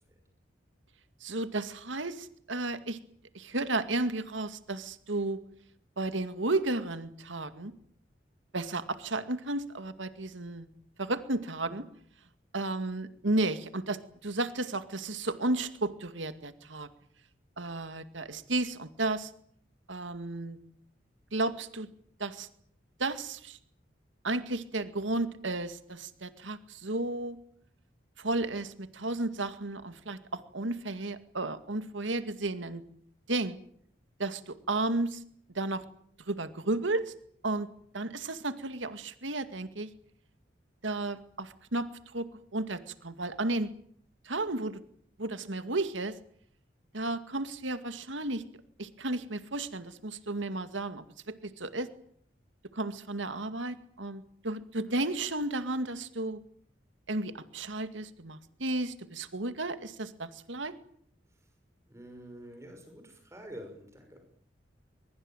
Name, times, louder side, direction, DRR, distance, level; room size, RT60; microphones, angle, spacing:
voice 1, 1.2-3.0 3.3-5.4 6.0-7.7 8.5-10.7 11.0-11.8 12.5-16.9 17.6-19.3 19.9-20.6 21.3-21.9 22.2-22.5 23.0-23.6 24.2-27.4 28.2-32.8 33.3-33.6 34.2-35.2 35.5-35.8 36.3-37.1 37.4-37.7 37.9-39.9 40.8-41.9 42.1-43.7 44.3-44.8 45.2-46.2 46.9-48.4 48.8-51.9 52.7-56.4 57.1-60.7, right 2 dB, 90° right, 10 dB, 2.2 m, -33 dB
voice 2, 61.9-64.2, equal, 15° right, 5 dB, 6.1 m, -47 dB
23.0 x 23.0 x 9.1 m, 0.64 s
head